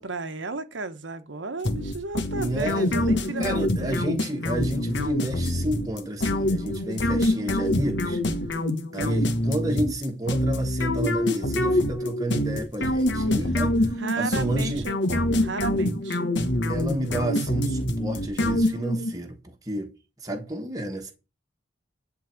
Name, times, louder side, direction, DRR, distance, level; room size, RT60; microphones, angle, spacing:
voice 1, 0.0-4.0 14.0-16.3, right 3 dB, 80° right, 1.1 m, -34 dB
sound 1, 1.6-19.1, left 1 dB, 70° left, 1.3 m, -25 dB
voice 2, 2.3-8.2 8.9-14.9 16.7-19.9 20.2-21.1, right 1 dB, 20° right, 1.3 m, -30 dB
11.0 x 3.9 x 7.7 m
head